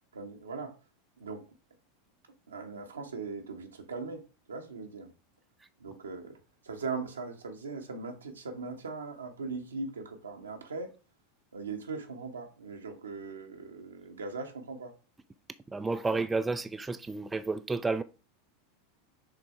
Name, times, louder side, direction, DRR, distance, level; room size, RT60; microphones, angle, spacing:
voice 1, 0.1-0.8 1.2-1.5 2.5-5.1 5.8-6.4 6.6-10.9 11.5-14.9, right 4 dB, 80° right, 1.2 m, -39 dB
voice 2, 15.7-18.0, right 3 dB, 15° right, 0.4 m, -31 dB
6.4 x 3.5 x 4.3 m
figure-of-eight pair, 85°, 0 cm